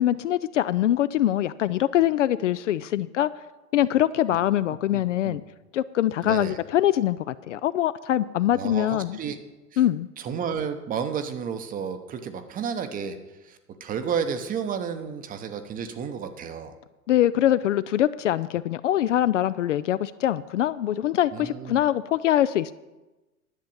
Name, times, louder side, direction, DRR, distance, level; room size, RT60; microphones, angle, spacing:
voice 1, 0.0-3.3 3.7-5.4 5.7-9.2 9.8-10.1 17.1-22.7, left 12 dB, 55° left, 16 dB, 0.5 m, -23 dB
voice 2, 4.9-5.4 6.2-6.6 8.5-9.4 9.7-9.8 10.2-13.2 13.4-16.7 21.3-21.8, right 7 dB, 20° right, 9 dB, 0.8 m, -32 dB
11.0 x 7.5 x 7.0 m, 1.1 s
figure-of-eight pair, 105°, 46 cm